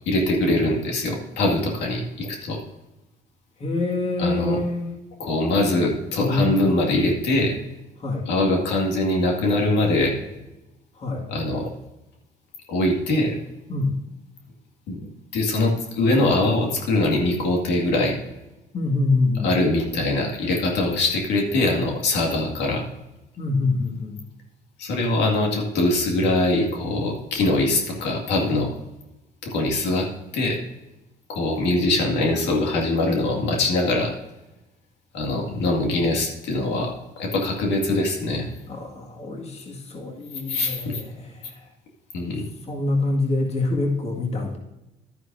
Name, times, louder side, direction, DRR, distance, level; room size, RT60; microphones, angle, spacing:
voice 1, 0.1-2.6 4.2-4.6 5.2-7.6 8.3-10.2 11.3-11.7 12.7-13.4 14.9-15.1 15.3-18.2 19.4-22.8 24.8-28.7 29.4-30.1 30.3-30.6 31.3-34.1 35.1-38.5 40.5-41.0 42.1-42.5, left 2 dB, 85° left, 0 dB, 2.2 m, -22 dB
voice 2, 3.6-4.9 6.2-7.0 8.0-8.3 11.0-11.3 13.7-14.0 18.7-19.5 23.4-24.2 38.7-41.6 42.7-44.6, left 2 dB, 40° left, 0 dB, 2.0 m, -25 dB
12.0 x 9.6 x 2.7 m, 0.95 s
cardioid pair, 110°, 17 cm